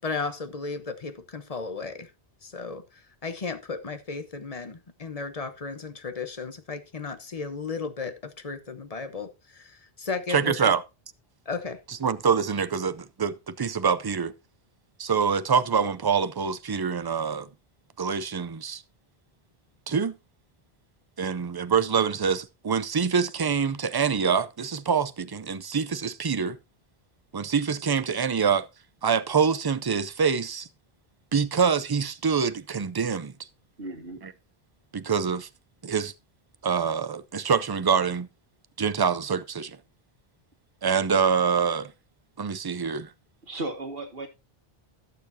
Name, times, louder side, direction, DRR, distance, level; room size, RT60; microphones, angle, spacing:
voice 1, 0.0-2.1 2.4-10.7 11.5-11.8, left 4 dB, 40° left, 1.0 m, -35 dB
voice 2, 10.3-10.8 11.9-14.3 15.0-17.5 18.0-18.8 19.9-20.2 21.2-26.6 27.3-28.7 29.0-30.7 31.3-33.3 34.9-35.5 35.8-36.1 36.6-38.3 38.8-39.8 40.8-41.9 42.4-43.1, right 6 dB, 35° right, 0.4 m, -25 dB
voice 3, 33.8-34.2 43.4-44.3, right 2 dB, 65° right, 2.0 m, -35 dB
16.5 x 6.9 x 2.7 m
omnidirectional pair, 1.1 m